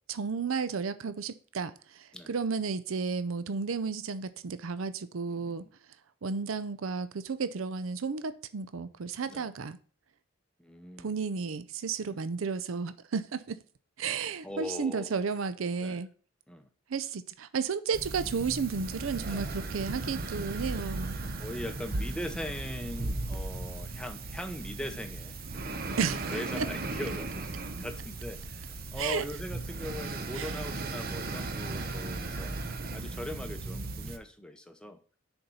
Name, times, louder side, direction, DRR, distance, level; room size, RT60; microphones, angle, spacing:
voice 1, 0.1-5.6 6.2-9.8 11.0-13.6 14.0-16.1 16.9-21.2 26.0-26.3 26.6-26.7 29.0-29.2 30.3-30.6, right 5 dB, 75° right, 13 dB, 0.5 m, -33 dB
voice 2, 5.3-5.6 9.3-9.5 10.6-11.1 12.0-12.2 14.4-15.2 15.8-16.0 16.5-16.7 19.3-19.5 21.4-25.4 25.9-32.5 32.9-35.0, left 1 dB, 5° left, 7 dB, 0.7 m, -40 dB
sound 1, 17.9-34.2, right 2 dB, 45° right, 0.8 m, -36 dB
6.5 x 4.5 x 5.4 m, 0.42 s
head